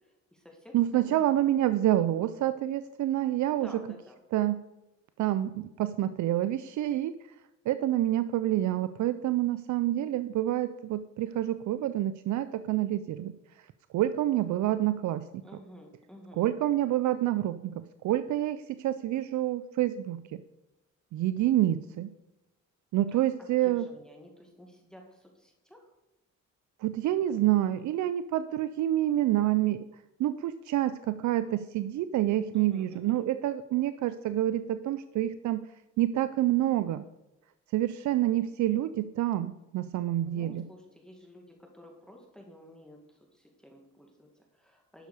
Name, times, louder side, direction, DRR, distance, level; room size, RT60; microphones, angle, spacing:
voice 1, 0.0-0.8 1.0-2.0 3.4-4.2 15.4-16.4 23.1-23.2 23.6-25.9 27.3-27.7 32.5-33.2 40.2-45.1, equal, ahead, 1 dB, 2.0 m, -52 dB
voice 2, 0.7-3.7 4.3-4.6 5.2-7.2 7.7-13.3 13.9-15.4 16.4-20.4 21.1-22.1 22.9-23.8 26.8-29.8 30.2-35.7 36.0-37.0 37.7-40.6, right 13 dB, 70° right, 12 dB, 0.5 m, -28 dB
11.5 x 6.7 x 4.9 m, 0.97 s
cardioid pair, 90°, 30 cm